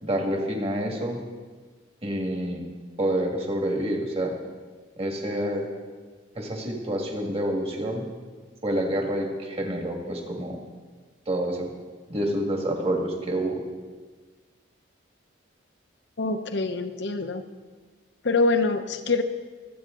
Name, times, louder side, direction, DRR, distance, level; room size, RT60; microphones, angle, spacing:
voice 1, 0.0-1.2 2.0-2.7 3.0-4.3 5.0-5.7 6.4-8.0 8.6-10.6 11.3-11.7 12.1-13.6, right 1 dB, 30° right, 1 dB, 2.0 m, -28 dB
voice 2, 16.2-17.4 18.2-19.2, left 3 dB, 65° left, 8 dB, 0.9 m, -25 dB
24.5 x 8.8 x 3.8 m, 1.4 s
head